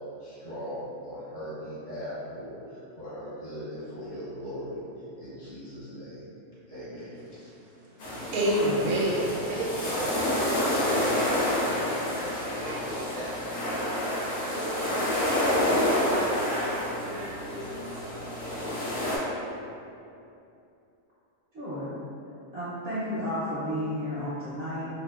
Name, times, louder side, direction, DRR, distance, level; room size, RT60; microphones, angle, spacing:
voice 1, 0.2-4.8 5.2-6.3 6.7-7.5, equal, 45° left, -13 dB, 1.3 m, -39 dB
voice 2, 7.3-13.4 14.5-17.9, right 1 dB, 80° right, -5 dB, 1.1 m, -33 dB
sound 1, 8.0-19.2, left 1 dB, 90° left, 1.2 m, -28 dB
voice 3, 21.5-21.9 22.5-24.9, equal, 55° right, -12 dB, 0.8 m, -32 dB
2.8 x 2.5 x 2.3 m, 2.7 s
omnidirectional pair, 1.6 m